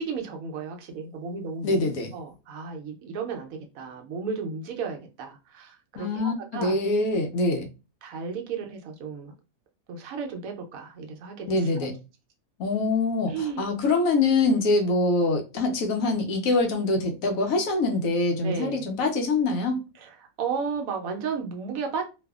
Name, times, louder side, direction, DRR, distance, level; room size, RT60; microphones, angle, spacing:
voice 1, 0.0-1.7 2.1-6.8 8.0-9.3 9.9-11.9 13.3-13.7 18.4-18.9 20.0-22.0, right 5 dB, 80° right, 1.0 m, -34 dB
voice 2, 1.6-2.1 5.9-7.7 11.5-12.0 12.6-19.8, left 3 dB, 75° left, 1.0 m, -24 dB
2.6 x 2.4 x 2.3 m
omnidirectional pair, 1.5 m